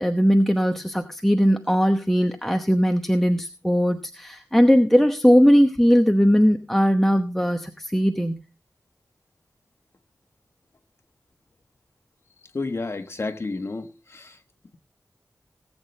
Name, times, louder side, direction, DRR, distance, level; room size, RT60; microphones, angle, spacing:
voice 1, 0.0-8.4, equal, 5° left, 0.9 m, -19 dB
voice 2, 12.5-14.4, left 3 dB, 45° left, 1.3 m, -31 dB
18.5 x 8.3 x 3.2 m
wide cardioid pair, 90°, 6 cm